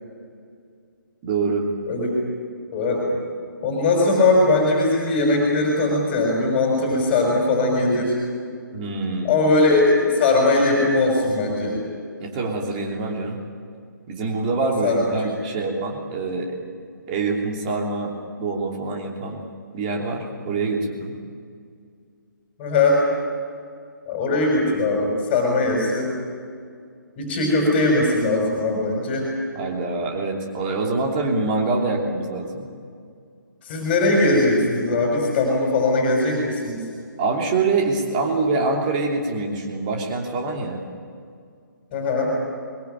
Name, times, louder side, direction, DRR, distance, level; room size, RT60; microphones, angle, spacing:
voice 1, 1.2-1.6 8.7-9.4 12.2-13.4 14.1-16.6 17.1-19.4 19.7-21.1 29.5-32.7 37.2-40.8, right 3 dB, 25° right, 0 dB, 3.1 m, -25 dB
voice 2, 2.7-3.1 3.6-8.2 9.2-11.8 14.8-15.1 22.6-23.0 24.1-26.1 27.2-29.3 33.6-36.8 41.9-42.3, left 2 dB, 20° left, -2 dB, 5.7 m, -20 dB
22.0 x 22.0 x 9.1 m, 2.2 s
figure-of-eight pair, 140°, 11 cm